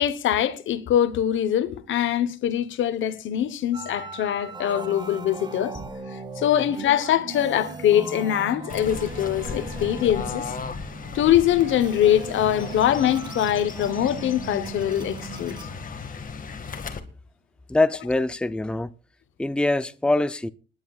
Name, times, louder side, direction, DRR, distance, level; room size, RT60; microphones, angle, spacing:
voice 1, 0.0-5.8 6.4-10.5 11.1-15.7, left 11 dB, 75° left, 1.1 m, -23 dB
sound 1, 3.7-15.8, right 2 dB, 20° right, 2.1 m, -41 dB
sound 2, 6.8-15.7, right 6 dB, 75° right, 2.5 m, -41 dB
Fowl / Bird, 8.7-17.0, left 5 dB, 45° left, 1.9 m, -36 dB
voice 2, 17.7-18.9 19.4-20.5, left 2 dB, 5° left, 0.6 m, -23 dB
28.5 x 11.0 x 2.4 m
cardioid pair, 90°, 20 cm